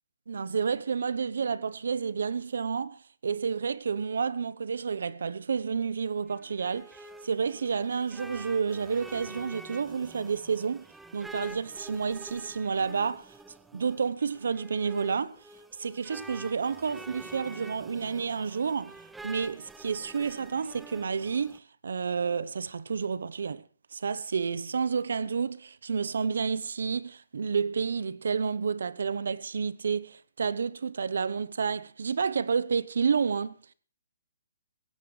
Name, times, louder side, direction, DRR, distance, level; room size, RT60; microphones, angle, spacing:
voice 1, 0.3-10.9 11.1-13.3 13.7-15.4 15.8-19.0 19.2-23.6 23.9-33.6, right 5 dB, 75° right, 0.8 m, -30 dB
sound 1, 6.3-21.6, right 2 dB, 5° right, 0.7 m, -47 dB
18.0 x 16.0 x 3.2 m
hypercardioid pair, 150°, 0 cm